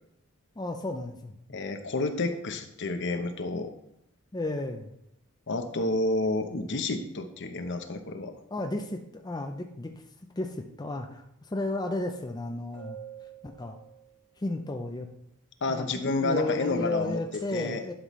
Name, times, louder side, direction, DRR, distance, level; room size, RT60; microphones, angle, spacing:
voice 1, 0.6-1.4 4.3-4.9 8.5-9.9 10.4-13.8 14.4-15.1 15.7-17.9, left 2 dB, 20° left, 3 dB, 0.5 m, -33 dB
voice 2, 1.5-3.7 5.5-8.3 15.6-17.2 17.5-17.9, left 2 dB, 55° left, 7 dB, 0.8 m, -30 dB
sound 1, 12.7-14.5 17.1-17.4, right 9 dB, 5° right, 2.3 m, -46 dB
11.5 x 5.8 x 3.1 m, 0.80 s
head